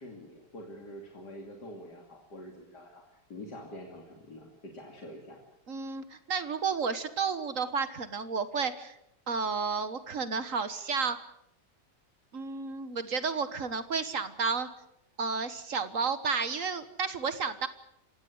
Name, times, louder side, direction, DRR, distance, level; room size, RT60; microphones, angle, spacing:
voice 1, 0.0-5.4, left 1 dB, 75° left, 1 dB, 3.4 m, -46 dB
voice 2, 5.7-9.0 9.3-11.2 12.3-14.7 15.2-17.7, right 5 dB, 50° right, 12 dB, 1.6 m, -32 dB
27.0 x 16.5 x 8.0 m, 0.79 s
omnidirectional pair, 1.8 m